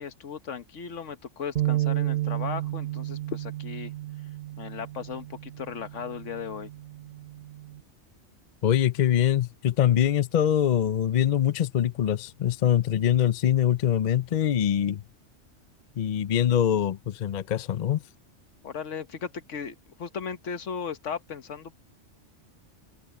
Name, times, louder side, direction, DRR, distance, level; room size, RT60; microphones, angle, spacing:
voice 1, 0.0-3.9 4.6-6.7 18.6-21.8, left 6 dB, 90° left, 1.4 m, -36 dB
sound 1, 1.6-7.8, right 15 dB, 60° right, 1.3 m, -32 dB
voice 2, 8.6-15.0 16.0-18.0, left 10 dB, 50° left, 0.6 m, -23 dB
omnidirectional pair, 1.2 m